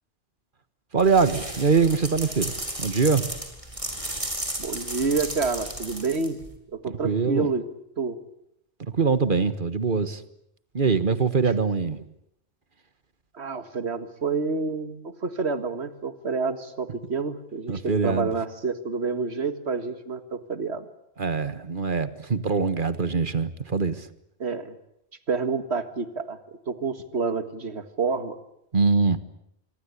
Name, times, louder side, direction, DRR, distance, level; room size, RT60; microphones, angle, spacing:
voice 1, 0.9-3.2 6.9-7.5 8.9-10.2 10.7-12.0 17.7-18.3 21.2-24.1 28.7-29.2, right 4 dB, 45° right, 13 dB, 1.6 m, -23 dB
sound 1, 1.0-6.6, right 1 dB, 30° right, 4.5 m, -34 dB
voice 2, 4.6-6.4 6.7-7.7 8.0-8.2 13.3-20.9 24.4-24.8 25.3-28.4, right 4 dB, 70° right, 11 dB, 2.1 m, -28 dB
26.0 x 23.5 x 8.4 m, 0.76 s
omnidirectional pair, 1.2 m